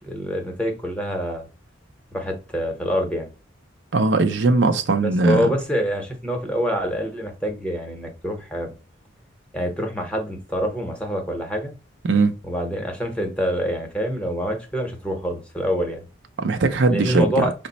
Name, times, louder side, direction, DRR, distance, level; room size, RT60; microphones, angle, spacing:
voice 1, 0.0-1.5 2.1-3.3 5.0-8.7 9.5-11.7 12.4-16.1 16.9-17.5, equal, 5° left, 0.8 m, -26 dB
voice 2, 3.9-5.5 12.0-12.3 16.4-17.5, right 3 dB, 60° right, 0.5 m, -19 dB
5.1 x 2.0 x 4.0 m
head